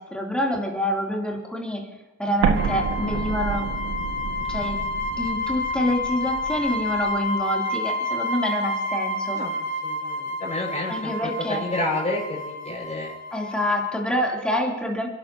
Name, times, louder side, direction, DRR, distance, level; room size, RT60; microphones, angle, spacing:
voice 1, 0.0-1.9 2.2-3.7 4.5-4.8 5.2-9.4 10.9-11.6 13.3-15.1, equal, 5° left, -1 dB, 3.1 m, -26 dB
Explosion, 2.4-7.2, right 6 dB, 80° right, 1.8 m, -29 dB
sound 1, 2.5-14.0, left 2 dB, 55° right, 3.0 m, -30 dB
voice 2, 9.3-13.1, left 2 dB, 25° left, -2 dB, 5.8 m, -30 dB
29.5 x 11.0 x 2.9 m, 1.1 s
cardioid pair, 90°, 30 cm